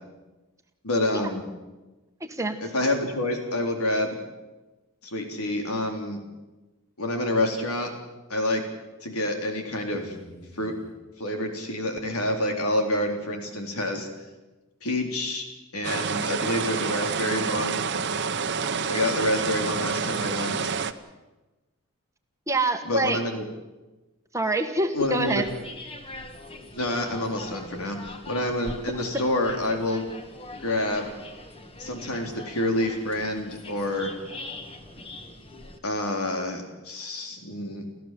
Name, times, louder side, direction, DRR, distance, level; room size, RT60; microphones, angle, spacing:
voice 1, 0.8-1.4 2.6-4.2 5.0-6.2 7.0-7.9 8.3-8.6 9.0-10.2 10.5-10.7 11.2-14.1 14.8-15.5 15.7-17.9 18.9-20.6 22.8-23.4 24.9-25.4 26.8-30.1 30.5-31.1 31.8-34.1 35.8-37.8, left 1 dB, 80° left, 3 dB, 3.9 m, -28 dB
voice 2, 2.2-2.6 22.5-23.2 24.3-25.4, right 2 dB, 15° right, 5 dB, 1.4 m, -25 dB
sound 1, 9.9-11.0 12.3-12.4 13.0-13.1, equal, 50° left, 3.0 m, -46 dB
sound 2, 15.8-20.9, right 5 dB, 50° right, 1.0 m, -28 dB
sound 3, 25.0-35.8, left 2 dB, 25° left, 1.9 m, -42 dB
30.0 x 14.5 x 7.7 m, 1.1 s
head